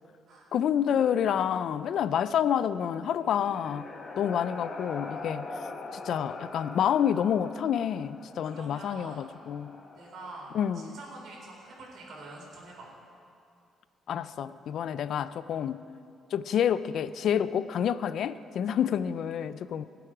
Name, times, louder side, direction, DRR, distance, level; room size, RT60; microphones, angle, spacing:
voice 1, 0.5-3.9 4.2-5.4 6.0-9.8 10.5-11.0 14.1-15.8 16.3-19.8, left 9 dB, 70° left, 0.4 m, -28 dB
sound 1, 3.1-10.9, left 3 dB, 45° left, 1.5 m, -42 dB
voice 2, 8.4-9.3 10.0-12.9 14.9-15.0 18.7-18.8, right 2 dB, 70° right, 4.1 m, -46 dB
22.5 x 7.9 x 4.9 m
cardioid pair, 90°, 0 cm